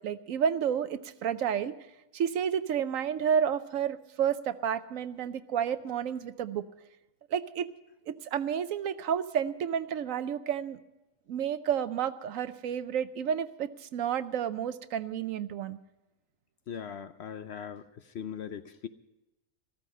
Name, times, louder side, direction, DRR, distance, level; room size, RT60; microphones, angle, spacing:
voice 1, 0.0-1.8 2.1-6.6 7.3-7.7 8.1-10.8 11.3-15.8, right 8 dB, 70° right, 13 dB, 1.0 m, -30 dB
voice 2, 16.7-18.9, left 8 dB, 60° left, 11 dB, 0.8 m, -40 dB
14.5 x 14.0 x 5.4 m, 0.98 s
omnidirectional pair, 1.5 m